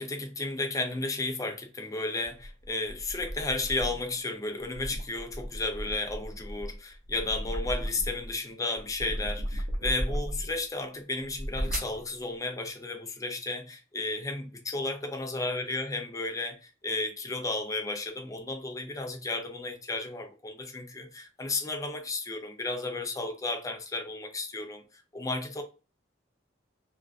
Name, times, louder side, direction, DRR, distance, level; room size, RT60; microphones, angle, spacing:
voice 1, 0.0-25.6, left 2 dB, 20° left, 0.4 m, -33 dB
sound 1, 2.2-4.1 4.6-8.3 8.7-10.6 11.2-12.0, equal, 45° right, 0.5 m, -35 dB
2.5 x 2.2 x 2.3 m
head